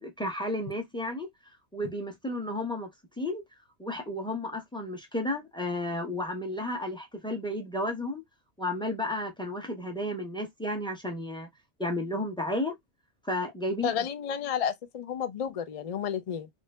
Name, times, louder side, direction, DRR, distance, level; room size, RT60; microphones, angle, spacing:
voice 1, 0.0-1.3 1.7-2.9 3.2-3.4 3.8-8.2 8.6-11.5 11.8-12.7 13.2-13.9, left 1 dB, 5° left, 0.6 m, -32 dB
voice 2, 13.8-16.5, left 8 dB, 65° left, 0.3 m, -31 dB
2.9 x 2.5 x 3.3 m
omnidirectional pair, 1.3 m